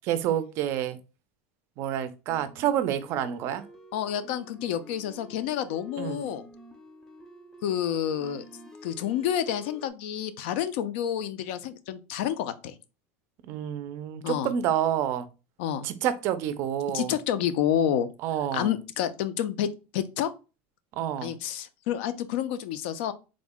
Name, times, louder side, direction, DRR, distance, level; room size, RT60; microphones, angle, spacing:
voice 1, 0.0-1.0 1.8-3.7 6.0-6.2 13.4-15.3 15.8-17.1 18.2-18.7 20.9-21.3, right 10 dB, 40° right, 0.4 m, -28 dB
sound 1, 2.3-9.9, right 1 dB, 5° left, 0.6 m, -49 dB
voice 2, 3.9-6.5 7.6-8.4 8.8-12.7 14.2-14.5 15.6-15.9 16.9-18.1 18.5-20.3 21.2-23.1, left 10 dB, 65° left, 0.4 m, -29 dB
3.6 x 2.0 x 3.6 m
supercardioid pair, 160°, 7 cm